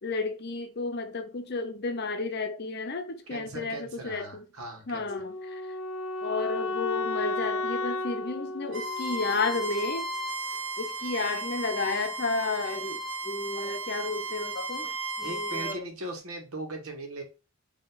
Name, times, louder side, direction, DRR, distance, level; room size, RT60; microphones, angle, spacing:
voice 1, 0.0-4.4 4.9-5.6 6.2-10.1 10.8-14.9 15.2-15.9, left 3 dB, 50° left, 0.7 m, -32 dB
voice 2, 3.3-5.1 15.2-17.2, right 1 dB, 85° right, 1.4 m, -39 dB
Wind instrument woodwind instrument, 5.1-10.1, left 2 dB, 90° left, 0.5 m, -34 dB
Bowed string instrument, 8.7-15.8, right 2 dB, 55° right, 1.1 m, -35 dB
4.6 x 2.9 x 3.9 m
head